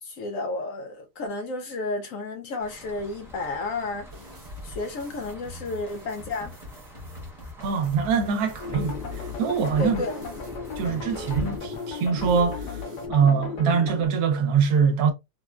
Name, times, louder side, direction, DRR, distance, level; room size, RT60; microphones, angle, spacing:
voice 1, 0.0-4.1 4.6-6.6 9.8-10.1, left 2 dB, 70° left, 0.8 m, -32 dB
sound 1, 2.6-11.6, equal, ahead, 0.9 m, -44 dB
sound 2, 4.1-13.1, left 3 dB, 35° right, 0.5 m, -42 dB
voice 2, 7.6-10.1 10.8-12.8 13.1-15.1, right 6 dB, 75° right, 1.1 m, -23 dB
sound 3, 8.6-14.1, left 4 dB, 85° left, 1.5 m, -35 dB
3.7 x 2.1 x 2.3 m
omnidirectional pair, 1.7 m